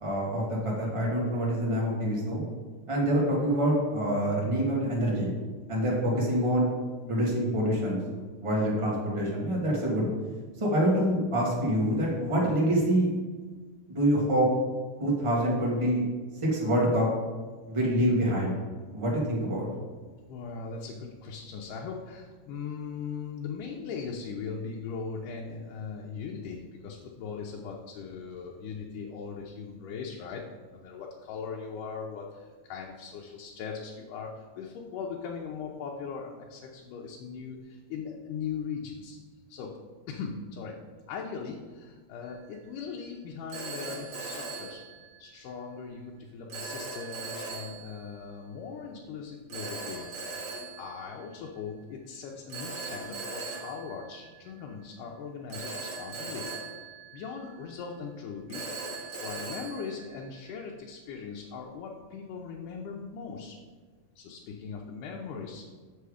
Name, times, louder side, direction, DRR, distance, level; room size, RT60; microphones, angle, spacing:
voice 1, 0.0-2.4 2.9-5.3 5.7-6.7 7.1-8.0 8.4-10.1 10.6-13.1 13.9-14.5 15.0-16.0 16.4-17.1 17.7-18.6 18.9-19.7, right 1 dB, 15° right, -4 dB, 0.9 m, -26 dB
voice 2, 20.3-30.4 30.7-39.2 39.5-39.7 40.1-40.8 41.1-44.8 45.2-50.1 50.8-56.4 57.1-58.7 59.2-63.6 64.2-65.6, left 5 dB, 90° left, -1 dB, 2.3 m, -39 dB
Telephone, 42.2-42.6 43.5-45.5 46.5-48.2 49.5-51.7 52.5-54.8 55.5-57.8 58.5-60.7, right 3 dB, 65° right, 2.7 m, -40 dB
6.8 x 6.1 x 4.9 m, 1.4 s
omnidirectional pair, 3.6 m